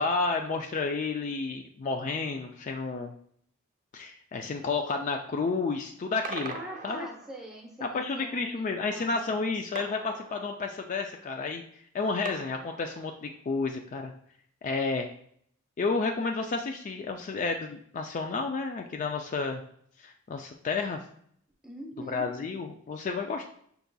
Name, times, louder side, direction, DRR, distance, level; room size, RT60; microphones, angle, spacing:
voice 1, 0.0-3.1 3.9-6.5 6.8-7.1 7.8-11.6 11.9-14.1 14.6-15.1 15.8-19.6 20.0-21.0 22.1-23.5, left 4 dB, 40° left, 4 dB, 0.3 m, -31 dB
sound 1, 6.2-7.6 9.7-10.9 12.2-13.4, right 4 dB, 40° right, 0.6 m, -42 dB
voice 2, 6.5-9.1 21.6-22.3, equal, ahead, 0 dB, 0.7 m, -43 dB
5.7 x 3.9 x 2.2 m, 0.65 s
head